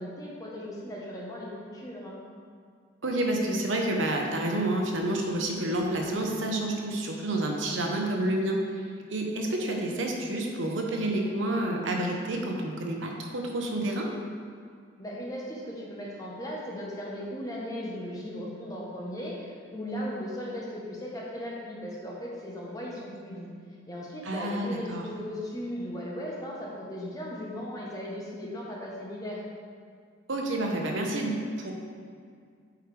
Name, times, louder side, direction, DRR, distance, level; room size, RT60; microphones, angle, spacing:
voice 1, 0.0-2.2 15.0-23.5 23.9-29.4, equal, 20° left, -4 dB, 1.0 m, -37 dB
voice 2, 3.0-14.1 24.2-25.1 30.3-31.7, right 1 dB, 75° right, 1 dB, 0.9 m, -29 dB
8.7 x 4.6 x 3.3 m, 2.1 s
head